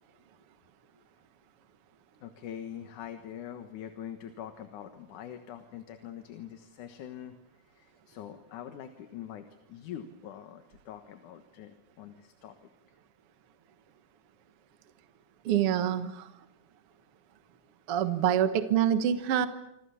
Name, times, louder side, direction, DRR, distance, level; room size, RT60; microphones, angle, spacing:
voice 1, 2.2-12.7, left 10 dB, 85° left, 7 dB, 2.9 m, -44 dB
voice 2, 15.5-16.3 17.9-19.5, right 10 dB, 55° right, 9 dB, 2.0 m, -26 dB
27.0 x 26.5 x 7.1 m, 0.85 s
omnidirectional pair, 3.5 m